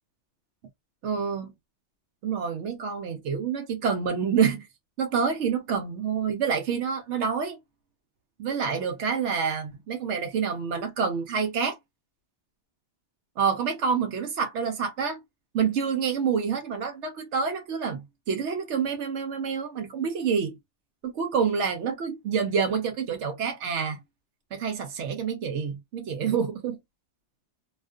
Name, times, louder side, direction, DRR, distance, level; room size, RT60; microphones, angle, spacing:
voice 1, 1.0-1.5 2.2-4.7 5.0-7.6 8.4-11.8 13.4-15.2 15.5-20.5 21.0-24.0 24.5-26.8, right 6 dB, 75° right, 0.9 m, -27 dB
2.3 x 2.3 x 2.3 m
omnidirectional pair, 1.2 m